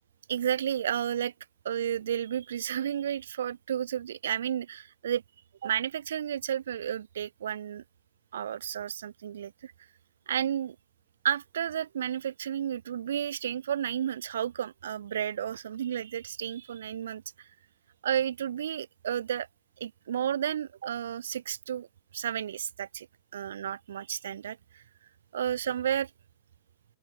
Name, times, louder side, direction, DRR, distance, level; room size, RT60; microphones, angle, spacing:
voice 1, 0.3-1.3 1.6-5.2 5.6-7.8 8.3-9.7 10.3-10.8 11.2-17.2 18.0-19.5 19.8-21.9 22.1-23.1 23.3-24.8 25.3-26.1, right 9 dB, 90° right, 2.3 m, -32 dB
open air
hypercardioid pair, 140°, 0 cm